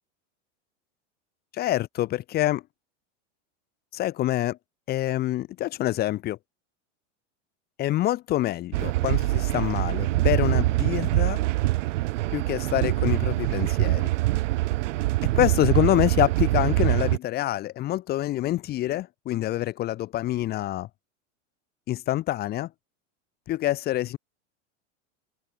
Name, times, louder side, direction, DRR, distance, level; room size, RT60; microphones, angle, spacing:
voice 1, 1.5-2.6 3.9-4.6 4.9-6.4 7.8-11.4 12.3-14.1 15.3-20.9 21.9-22.7 23.5-24.2, left 14 dB, 25° left, 1.0 m, -26 dB
sound 1, 8.7-17.2, right 18 dB, 80° right, 1.2 m, -24 dB
supercardioid pair, 165°, 37 cm